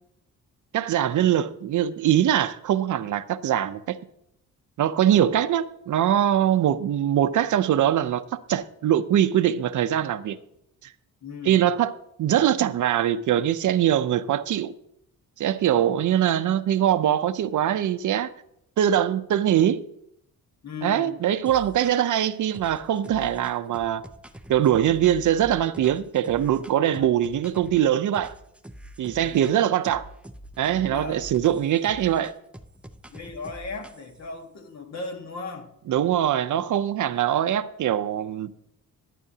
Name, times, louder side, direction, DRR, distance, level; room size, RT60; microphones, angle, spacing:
voice 1, 0.7-4.0 4.8-8.2 8.5-10.4 11.5-11.9 12.2-14.7 15.4-18.3 18.8-19.8 20.8-24.0 24.5-28.3 29.0-30.0 30.6-32.3 35.9-38.5, right 10 dB, 60° right, 0.6 m, -22 dB
voice 2, 11.2-11.7 20.6-21.2 26.8-27.1 29.0-29.6 30.7-31.3 33.1-35.7, left 4 dB, 50° left, 1.6 m, -38 dB
sound 1, 21.4-22.2 22.5-27.8 28.1-29.6 29.8-34.3, right 1 dB, 5° right, 0.5 m, -45 dB
13.5 x 11.0 x 2.8 m
cardioid pair, 125°, 34 cm